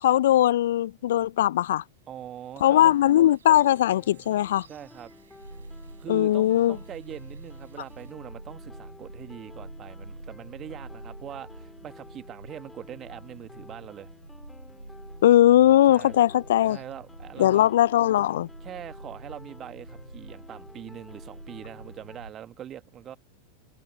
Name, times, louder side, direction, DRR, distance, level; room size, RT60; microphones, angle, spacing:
voice 1, 0.0-1.8 2.6-4.7 6.1-6.8 15.2-16.8 17.4-18.5, left 12 dB, 60° left, 0.3 m, -20 dB
sound 1, 1.1-8.1, right 7 dB, 70° right, 4.8 m, -59 dB
voice 2, 2.1-3.0 4.7-5.1 6.0-14.1 15.9-16.3 16.7-17.7 18.6-23.2, right 10 dB, 30° right, 1.7 m, -42 dB
sound 2, 3.4-22.2, left 3 dB, 10° left, 2.3 m, -52 dB
sound 3, 5.4-22.3, right 1 dB, 85° right, 0.9 m, -46 dB
figure-of-eight pair, 90°, 0 cm